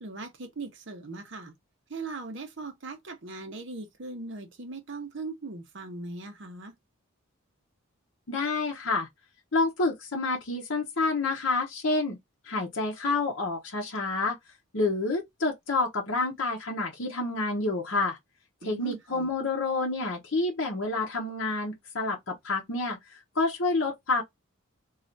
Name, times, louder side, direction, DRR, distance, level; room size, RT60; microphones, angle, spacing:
voice 1, 0.0-1.5 1.9-6.7 18.6-19.3, right 3 dB, 55° right, 0.7 m, -39 dB
voice 2, 8.3-9.1 9.5-12.2 12.4-14.4 14.7-18.2 18.6-24.2, left 3 dB, 60° left, 0.7 m, -28 dB
3.2 x 2.4 x 2.5 m
head